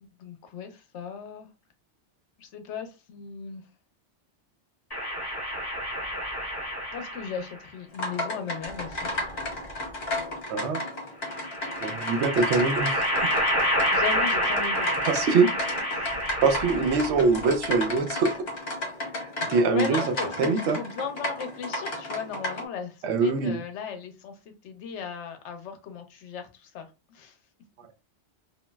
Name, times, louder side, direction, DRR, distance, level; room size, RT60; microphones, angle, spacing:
voice 1, 0.0-1.5 2.4-3.7 6.9-9.1 13.9-14.9 15.9-16.2 19.7-27.4, left 6 dB, 80° left, 0.9 m, -37 dB
sound 1, 4.9-7.5 8.7-9.7 11.3-17.3, equal, 20° left, 1.4 m, -29 dB
sound 2, 7.9-22.7, left 1 dB, 60° left, 1.1 m, -33 dB
voice 2, 10.5-10.8 11.8-13.0 15.1-15.5 16.4-18.3 19.5-20.0 20.4-20.8 23.0-23.6, right 4 dB, 75° right, 0.9 m, -23 dB
2.9 x 2.5 x 2.2 m
omnidirectional pair, 1.2 m